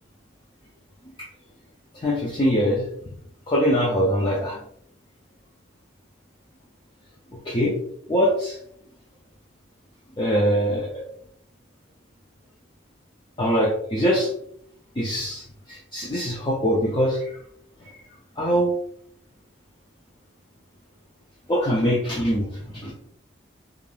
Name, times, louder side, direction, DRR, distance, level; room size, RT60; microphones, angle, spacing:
voice 1, 1.9-2.9 3.5-4.6 7.4-7.8 8.1-8.6 10.2-11.0 13.4-14.3 15.0-17.4 17.8-18.0 18.4-18.8 21.5-22.9, equal, 25° left, -4 dB, 0.4 m, -23 dB
3.3 x 2.4 x 2.3 m, 0.69 s
head